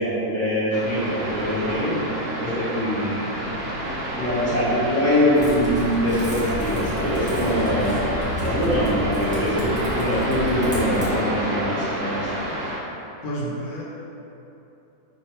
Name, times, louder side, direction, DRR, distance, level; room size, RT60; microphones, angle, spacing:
voice 1, 0.0-1.9 2.4-3.2 4.1-8.1 8.4-12.3, equal, 10° left, -12 dB, 1.4 m, -23 dB
sound 1, 0.7-12.8, right 1 dB, 50° right, 0.8 m, -29 dB
Typing, 5.3-11.1, left 1 dB, 5° right, 0.7 m, -31 dB
voice 2, 13.2-13.8, right 1 dB, 80° left, -4 dB, 1.2 m, -30 dB
5.8 x 3.1 x 2.9 m, 3.0 s
omnidirectional pair, 1.6 m